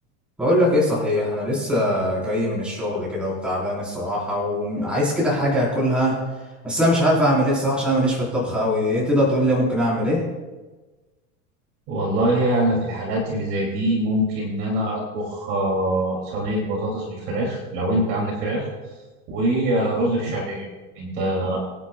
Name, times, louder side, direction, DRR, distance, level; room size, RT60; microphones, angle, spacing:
voice 1, 0.4-6.1 6.6-10.2, equal, 5° right, -7 dB, 4.1 m, -21 dB
voice 2, 11.9-18.7 19.3-20.7 20.9-21.6, right 1 dB, 35° right, -3 dB, 2.7 m, -23 dB
25.0 x 10.0 x 2.3 m, 1.2 s
supercardioid pair, 175°, 38 cm